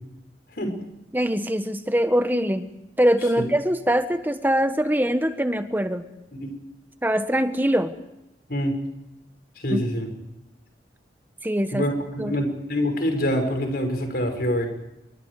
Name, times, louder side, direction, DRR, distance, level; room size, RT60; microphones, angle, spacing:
voice 1, 1.1-2.7 3.0-6.1 7.0-7.9 9.7-9.8 11.4-11.9 12.2-12.4, equal, 10° right, 9 dB, 1.4 m, -23 dB
voice 2, 9.6-10.1 11.7-14.7, equal, 55° left, 4 dB, 6.4 m, -25 dB
28.5 x 24.0 x 5.0 m, 0.91 s
head